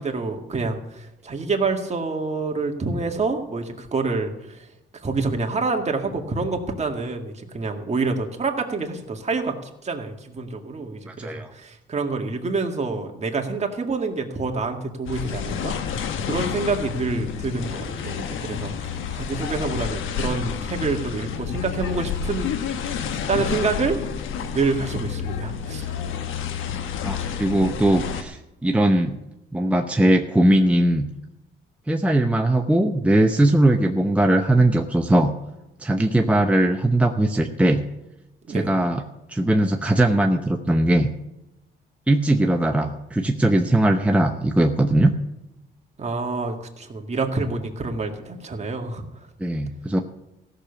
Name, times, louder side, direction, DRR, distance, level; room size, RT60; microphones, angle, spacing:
voice 1, 0.0-4.7 4.9-22.5 22.9-24.0 24.5-25.9 38.5-38.7 46.0-49.2, right 3 dB, 35° right, 3 dB, 2.0 m, -27 dB
voice 2, 11.1-11.5 27.0-29.2 29.5-31.1 31.9-35.3 35.8-37.8 38.5-39.0 39.3-41.1 42.1-45.1 49.4-50.0, right 1 dB, 5° right, 3 dB, 0.8 m, -20 dB
sound 1, 15.1-28.2, left 7 dB, 80° left, 1.2 m, -29 dB
15.5 x 6.8 x 7.1 m, 0.93 s
cardioid pair, 90°, 20 cm